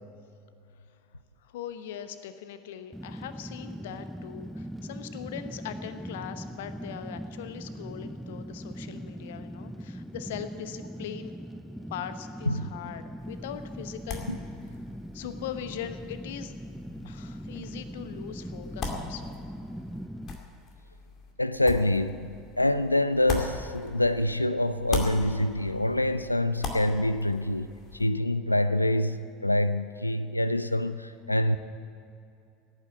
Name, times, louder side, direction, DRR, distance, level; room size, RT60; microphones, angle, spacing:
voice 1, 1.4-11.3 11.9-14.3 15.1-16.5 17.0-19.3, left 9 dB, 60° left, 11 dB, 1.0 m, -40 dB
Fire, 2.9-20.4, equal, ahead, 0.4 m, -40 dB
sound 1, 13.2-24.4 24.7-28.1, left 4 dB, 40° left, 2.3 m, -40 dB
voice 2, 21.4-31.6, left 1 dB, 85° left, 14 dB, 0.4 m, -26 dB
17.5 x 9.2 x 8.8 m, 2.6 s
figure-of-eight pair, 75°, 0 cm